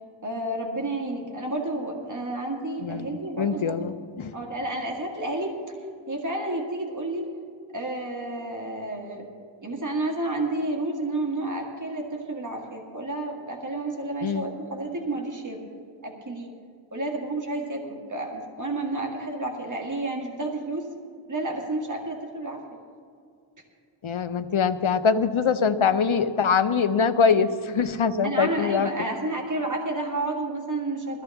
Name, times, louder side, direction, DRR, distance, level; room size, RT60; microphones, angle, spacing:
voice 1, 0.2-3.9 4.3-5.8 6.1-7.3 7.7-9.2 9.6-15.6 16.0-16.5 16.9-20.9 21.3-22.6 28.2-31.2, right 2 dB, 40° right, 0 dB, 1.8 m, -30 dB
voice 2, 2.8-4.3 14.2-14.4 24.0-28.9, left 6 dB, 75° left, 11 dB, 0.8 m, -23 dB
21.0 x 15.0 x 3.5 m, 2.4 s
wide cardioid pair, 50°, 49 cm